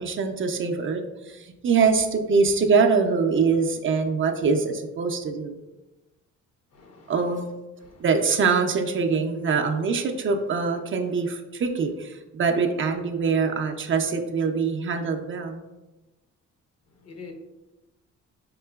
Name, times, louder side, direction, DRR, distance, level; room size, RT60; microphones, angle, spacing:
voice 1, 0.0-5.6 7.1-7.5 8.0-15.6, right 5 dB, 40° right, 4 dB, 0.5 m, -24 dB
voice 2, 6.7-7.3 7.8-8.0 16.9-17.3, left 5 dB, 55° left, 3 dB, 0.8 m, -45 dB
4.7 x 3.7 x 2.3 m, 1.1 s
cardioid pair, 90°, 30 cm